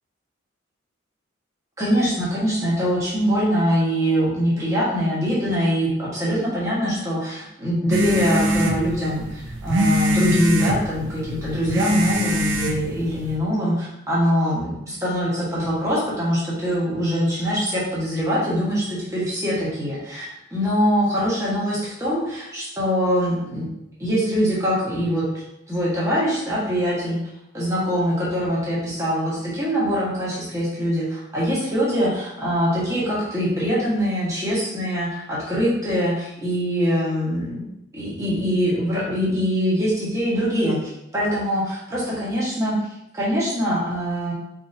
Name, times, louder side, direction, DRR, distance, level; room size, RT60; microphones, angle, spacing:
voice 1, 1.8-20.2 20.5-23.7 24.0-25.2 25.7-27.2 27.5-37.7 37.9-42.8 43.1-44.3, equal, 15° right, -8 dB, 1.5 m, -23 dB
sound 1, 7.9-13.4, equal, 75° right, 0.6 m, -23 dB
4.6 x 3.8 x 2.8 m, 0.83 s
head